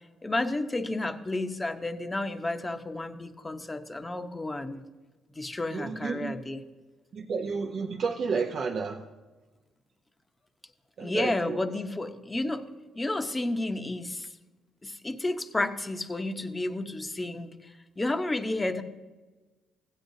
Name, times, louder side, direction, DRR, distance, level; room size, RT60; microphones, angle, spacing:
voice 1, 0.2-4.8 5.3-6.6 11.0-12.6 12.9-14.3 14.8-18.8, left 2 dB, 20° left, 7 dB, 0.9 m, -31 dB
voice 2, 5.7-6.4 7.1-9.1 11.0-11.6, right 5 dB, 55° right, 2 dB, 0.7 m, -31 dB
16.0 x 9.3 x 2.7 m, 1.2 s
cardioid pair, 80°, 0 cm